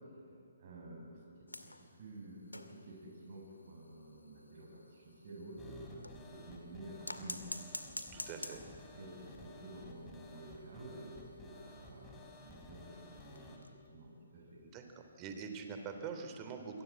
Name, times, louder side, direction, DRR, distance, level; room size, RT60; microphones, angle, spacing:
voice 1, 0.6-7.4 8.9-13.6 13.9-14.6, right 2 dB, 45° right, -2 dB, 6.8 m, -51 dB
sound 1, 1.5-6.3 7.0-9.0 9.3-9.4 9.7-9.8 10.1-10.2 10.8-13.9 14.4-14.6 15.8-15.9, left 2 dB, 85° left, 2.2 m, -49 dB
sound 2, 5.6-13.6, left 2 dB, 15° left, 4.8 m, -55 dB
voice 2, 8.1-8.6 14.6-16.8, right 5 dB, 25° right, 6 dB, 3.5 m, -44 dB
27.5 x 22.5 x 8.6 m, 2.4 s
figure-of-eight pair, 135°, 0 cm